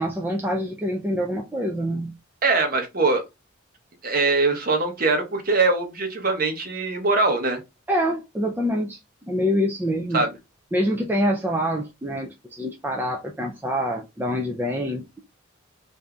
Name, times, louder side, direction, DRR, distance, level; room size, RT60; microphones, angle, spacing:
voice 1, 0.0-2.1 7.9-9.0 9.3-10.2 10.7-15.2, equal, 10° right, 0.4 m, -25 dB
voice 2, 2.4-3.2 4.0-7.6 10.1-10.3, right 3 dB, 45° right, 1.0 m, -22 dB
3.4 x 2.7 x 3.5 m
head